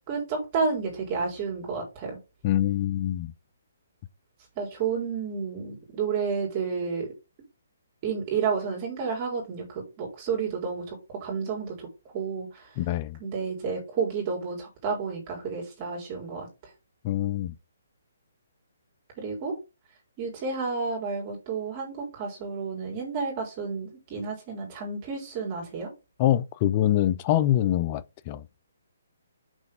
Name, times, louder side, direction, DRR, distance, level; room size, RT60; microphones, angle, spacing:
voice 1, 0.1-2.2 4.6-7.1 8.0-11.9 12.1-12.7 13.2-16.5 19.2-19.6 20.2-25.9, right 5 dB, 35° right, 4.1 m, -31 dB
voice 2, 2.4-3.3 12.8-13.2 17.0-17.5 26.2-28.4, left 12 dB, 35° left, 0.5 m, -24 dB
6.2 x 5.4 x 5.1 m
figure-of-eight pair, 140°, 0 cm